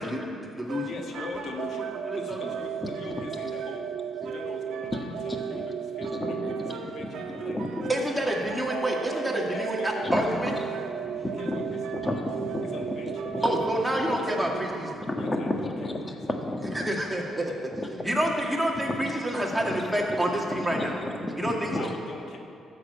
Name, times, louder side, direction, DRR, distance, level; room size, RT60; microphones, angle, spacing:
voice 1, 0.0-0.9 1.2-1.3 2.0-2.6 7.9-10.5 13.4-15.0 16.7-17.5 18.0-20.9 21.4-21.9, right 1 dB, 5° right, -1 dB, 2.2 m, -28 dB
sound 1, 0.7-14.9, right 7 dB, 80° right, 1.2 m, -35 dB
voice 2, 0.8-3.9 4.2-7.1 7.4-7.6 7.9-8.0 9.0-9.9 11.4-11.6 12.7-13.1 13.4-13.6 15.2-15.9 17.6-17.7 21.7-22.4, left 4 dB, 65° left, 2 dB, 1.5 m, -42 dB
voice 3, 2.8-3.3 4.2-4.3 4.9-5.6 6.0-7.9 10.0-10.6 11.0-13.7 14.0-14.2 15.1-16.9 17.7-18.2 18.7-19.1 19.5-19.8 20.1-20.2 20.5-21.9, left 1 dB, 20° left, 2 dB, 1.6 m, -33 dB
13.0 x 6.8 x 8.4 m, 2.5 s
cardioid pair, 90°, 0 cm